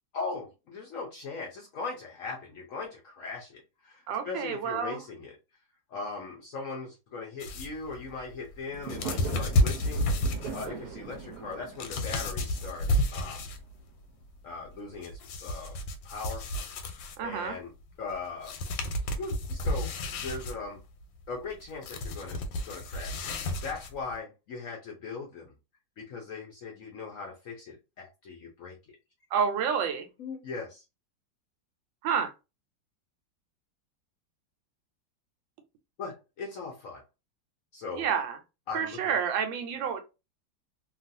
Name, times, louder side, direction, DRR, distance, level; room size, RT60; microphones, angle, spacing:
voice 1, 0.1-5.4 5.9-10.1 10.5-13.5 14.4-15.8 16.0-16.5 17.2-17.7 18.0-18.6 19.1-19.9 20.2-20.8 21.3-22.4 22.6-23.3 23.6-25.5 26.0-29.0 30.2-30.8 36.0-37.0 37.7-38.1 38.7-39.1, left 4 dB, 65° left, 0.8 m, -39 dB
voice 2, 4.1-5.0 17.2-17.6 29.3-30.1 32.0-32.3 38.0-38.4 38.7-40.0, right 7 dB, 85° right, 1.4 m, -29 dB
sound 1, 7.4-13.8 14.1-17.4 18.1-18.2 18.4-24.2, left 1 dB, 90° left, 1.3 m, -31 dB
Fireworks, 8.7-13.9, right 6 dB, 70° right, 1.0 m, -42 dB
3.0 x 2.3 x 2.6 m
omnidirectional pair, 2.0 m